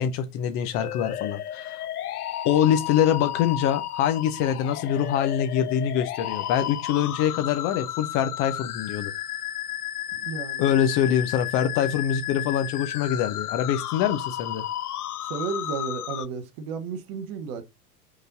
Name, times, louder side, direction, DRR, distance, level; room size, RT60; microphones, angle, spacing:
voice 1, 0.0-1.8 2.4-9.1 10.6-14.6, left 9 dB, 25° left, 0.7 m, -24 dB
sound 1, 0.7-16.3, left 12 dB, 70° left, 0.6 m, -33 dB
voice 2, 10.1-10.7 15.3-17.6, right 5 dB, 30° right, 0.9 m, -33 dB
5.3 x 4.0 x 5.9 m
figure-of-eight pair, 95°, 48 cm